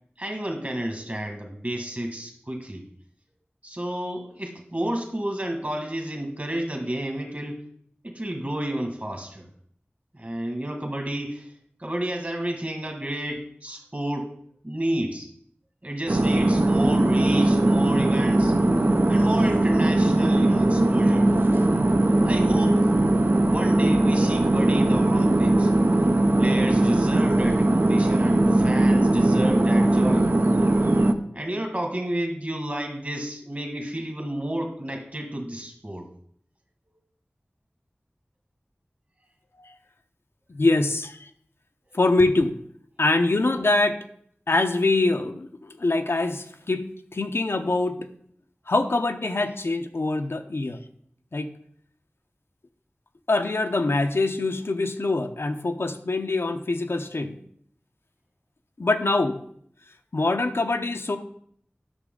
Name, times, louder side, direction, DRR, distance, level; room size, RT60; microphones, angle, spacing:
voice 1, 0.2-2.8 3.6-7.6 8.0-9.5 10.1-11.5 11.8-14.3 14.6-15.3 15.8-18.5 19.1-21.3 22.3-22.9 23.5-25.7 26.4-30.3 31.3-36.1, right 1 dB, 40° right, 2 dB, 1.8 m, -30 dB
sound 1, 16.1-31.1, right 1 dB, 55° right, 0.6 m, -20 dB
voice 2, 40.5-41.3 41.9-42.5 43.0-44.0 44.5-48.1 48.7-50.8 51.3-51.5 53.3-57.3 58.8-59.4 60.1-61.2, left 2 dB, 75° left, 6 dB, 0.7 m, -24 dB
9.8 x 6.1 x 3.8 m, 0.66 s
wide cardioid pair, 55°, 4 cm